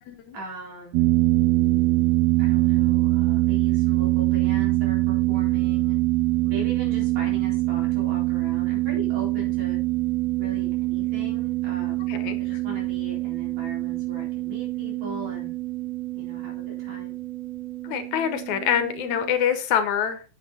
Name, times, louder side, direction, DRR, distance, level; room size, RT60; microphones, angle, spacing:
voice 1, 0.3-1.1 2.4-6.0 6.4-9.8 10.4-12.1 12.4-15.5 16.1-17.2, equal, 60° right, -2 dB, 5.5 m, -40 dB
sound 1, 0.9-19.4, right 18 dB, 85° right, 1.4 m, -24 dB
voice 2, 12.1-12.4 17.8-20.2, left 8 dB, 70° left, 9 dB, 2.3 m, -25 dB
8.7 x 8.3 x 4.2 m, 0.34 s
omnidirectional pair, 3.6 m